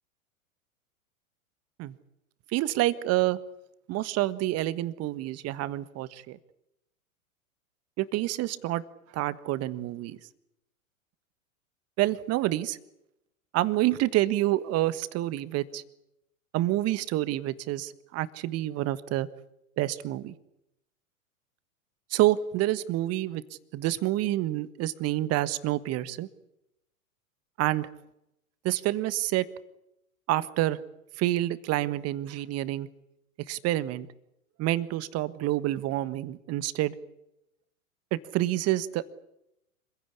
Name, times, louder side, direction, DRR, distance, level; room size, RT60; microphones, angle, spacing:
voice 1, 2.5-3.4 3.9-6.4 8.0-8.8 9.1-10.2 12.0-12.8 13.5-15.8 16.5-19.3 19.8-20.3 22.1-26.3 27.6-27.9 28.6-29.5 30.3-30.8 31.2-32.9 33.5-34.1 34.6-36.9 38.1-39.1, right 15 dB, 35° right, 15 dB, 1.4 m, -28 dB
26.0 x 16.0 x 10.0 m, 0.85 s
hypercardioid pair, 105°, 42 cm